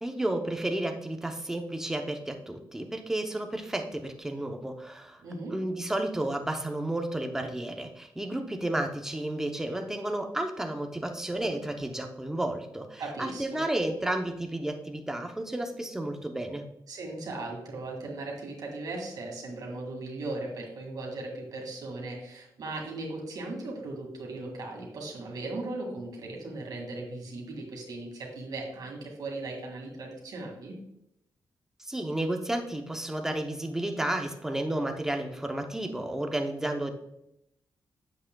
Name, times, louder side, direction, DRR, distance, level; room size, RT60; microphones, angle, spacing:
voice 1, 0.0-5.2 5.5-16.6 31.8-36.9, right 1 dB, 5° right, 4 dB, 0.7 m, -32 dB
voice 2, 5.2-5.5 13.0-13.6 16.9-30.7, right 2 dB, 65° right, 0 dB, 2.1 m, -38 dB
8.5 x 7.5 x 2.3 m, 0.80 s
wide cardioid pair, 160°, 7 cm